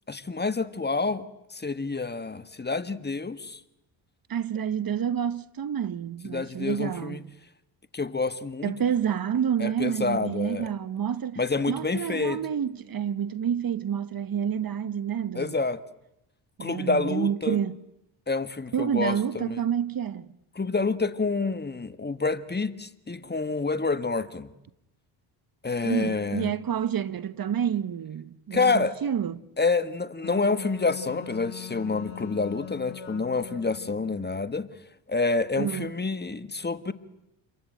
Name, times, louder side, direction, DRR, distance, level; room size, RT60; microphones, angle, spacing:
voice 1, 0.1-1.2 1.5-3.6 6.2-7.2 7.9-8.7 9.6-10.7 11.4-12.4 15.3-15.8 16.6-17.6 18.3-19.6 20.5-24.5 25.6-26.5 28.5-29.0 29.6-34.7 35.1-36.9, left 4 dB, 20° left, 1.6 m, -28 dB
voice 2, 4.3-7.3 8.6-15.6 16.6-17.7 18.7-20.4 25.8-29.5 35.6-36.0, right 8 dB, 45° right, 1.1 m, -29 dB
Wind instrument woodwind instrument, 30.2-34.3, left 12 dB, 70° left, 5.2 m, -42 dB
29.0 x 22.5 x 9.1 m
supercardioid pair, 70°, 50 cm